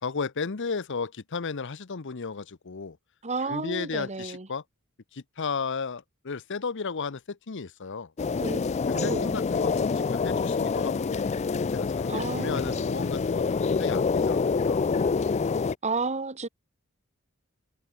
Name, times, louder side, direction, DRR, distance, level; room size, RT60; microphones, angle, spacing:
voice 1, 0.0-3.0 3.4-4.6 5.1-8.1 9.0-11.2 11.7-14.8, left 5 dB, 60° left, 0.8 m, -34 dB
voice 2, 3.2-4.5 8.4-8.6 8.9-9.3 12.1-12.8 15.8-16.5, right 3 dB, 30° right, 1.6 m, -31 dB
sound 1, 8.2-15.7, left 4 dB, 30° left, 0.4 m, -26 dB
head